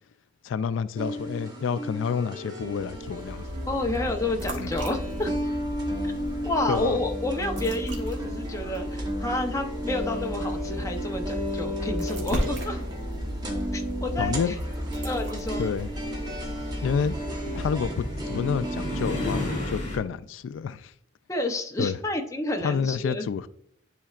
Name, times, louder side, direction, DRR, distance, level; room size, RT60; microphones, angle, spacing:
voice 1, 0.4-3.4 4.6-4.7 5.3-5.4 6.7-7.0 14.2-14.5 15.6-15.9 16.8-17.2 17.5-20.9 21.8-22.0 22.6-23.5, left 6 dB, 90° left, 0.3 m, -29 dB
sound 1, 1.0-19.7, equal, 20° right, 1.0 m, -34 dB
sound 2, 2.8-18.6, equal, 70° right, 1.4 m, -35 dB
voice 2, 3.7-5.4 6.0-6.1 6.4-12.8 13.7-14.5 15.0-15.6 21.3-23.3, left 2 dB, 15° left, 0.7 m, -30 dB
sound 3, 15.2-20.0, left 1 dB, 40° left, 2.4 m, -35 dB
10.0 x 4.2 x 2.4 m
head